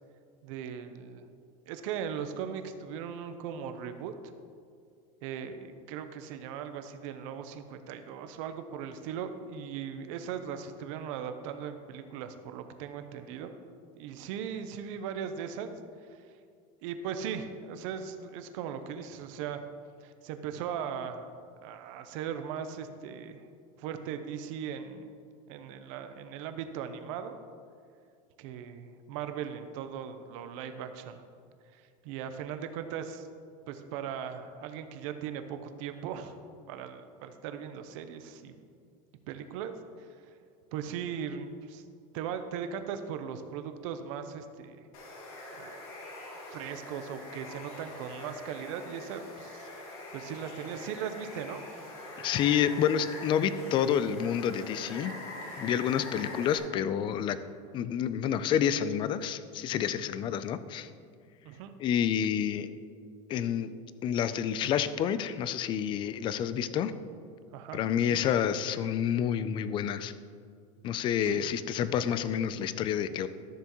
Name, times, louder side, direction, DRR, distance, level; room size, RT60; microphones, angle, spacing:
voice 1, 0.4-1.3 1.7-4.3 5.2-13.5 13.9-15.7 16.8-19.6 20.0-21.3 21.6-23.5 23.8-25.1 25.5-27.4 28.4-31.2 31.7-33.3 33.7-36.4 36.7-38.6 39.3-39.7 40.7-41.8 42.1-44.8 45.5-45.9 46.5-49.7 50.1-51.6 61.4-61.7 67.5-68.2 71.2-71.6, right 8 dB, 65° right, 8 dB, 0.7 m, -38 dB
Water, 44.9-56.6, left 2 dB, 90° left, 2.2 m, -43 dB
voice 2, 52.2-55.1 55.6-57.4 57.7-60.9 61.8-62.7 63.3-63.7 64.0-66.9 67.7-70.1 70.8-73.3, left 9 dB, 30° left, 13 dB, 0.3 m, -29 dB
13.0 x 6.9 x 3.0 m, 2.3 s
supercardioid pair, 155°, 18 cm